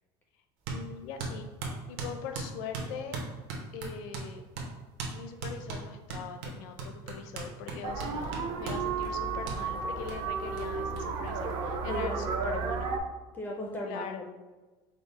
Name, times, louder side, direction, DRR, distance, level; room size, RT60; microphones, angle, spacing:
voice 1, 0.7-1.5 1.9-3.2 3.7-4.4 5.1-12.9 13.8-14.2, left 7 dB, 65° left, 6 dB, 0.5 m, -41 dB
sound 1, 0.7-0.8 1.2-4.3 4.6-4.7 5.0-5.2 5.4-8.9 9.5-9.6 10.1-10.2 10.6-10.7 11.0-11.1 11.3-12.0, right 3 dB, 60° right, 0.9 m, -37 dB
sound 2, 7.8-13.0, right 5 dB, 45° right, 0.5 m, -33 dB
voice 2, 13.3-14.3, left 1 dB, 15° left, 0 dB, 0.4 m, -37 dB
5.0 x 2.0 x 4.0 m, 1.2 s
cardioid pair, 170°, 12 cm